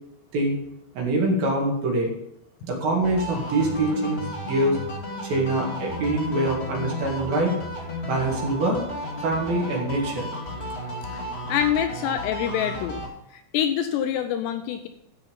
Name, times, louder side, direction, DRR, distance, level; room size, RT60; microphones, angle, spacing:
voice 1, 1.0-2.1 2.6-4.8 5.2-7.5 8.0-8.8 9.2-10.3, right 2 dB, 60° right, -1 dB, 3.6 m, -24 dB
sound 1, 3.0-13.1, left 1 dB, 40° left, 0.9 m, -33 dB
voice 2, 11.5-13.0 13.3-14.9, left 9 dB, 85° left, 8 dB, 2.6 m, -26 dB
13.5 x 5.7 x 5.5 m, 0.78 s
omnidirectional pair, 5.3 m